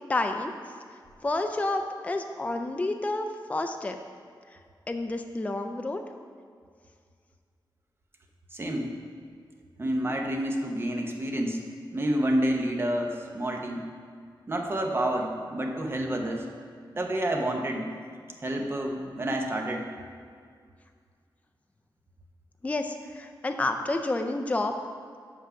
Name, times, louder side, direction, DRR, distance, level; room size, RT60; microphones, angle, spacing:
voice 1, 0.1-0.5 1.2-4.0 4.9-6.0 22.6-24.7, left 2 dB, 15° left, 5 dB, 0.4 m, -29 dB
voice 2, 8.5-8.9 9.8-11.6 11.9-13.8 14.5-16.4 16.9-17.9 18.4-19.9, right 1 dB, 30° right, 1 dB, 0.8 m, -29 dB
6.4 x 5.9 x 5.6 m, 2.1 s
wide cardioid pair, 140°, 8 cm